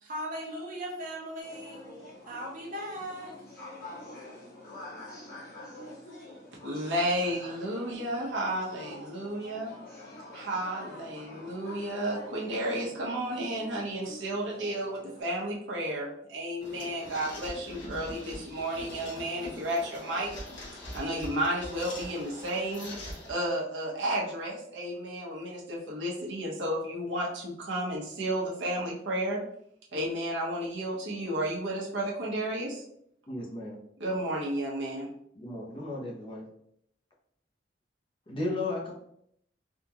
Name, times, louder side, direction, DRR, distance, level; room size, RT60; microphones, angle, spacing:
voice 1, 0.0-3.3, equal, 45° right, 0.9 m, -38 dB
sound 1, 1.4-15.2, left 1 dB, 50° left, 1.4 m, -47 dB
voice 2, 6.6-9.7 10.3-20.3 20.9-22.9 23.2-29.4 29.9-32.8 34.0-35.1, right 1 dB, 75° right, 0.9 m, -32 dB
sound 2, 16.6-23.3, left 1 dB, 85° left, 1.3 m, -43 dB
voice 3, 33.3-33.8 35.3-36.4 38.3-38.9, left 2 dB, 30° left, 0.7 m, -34 dB
3.6 x 2.4 x 2.8 m
head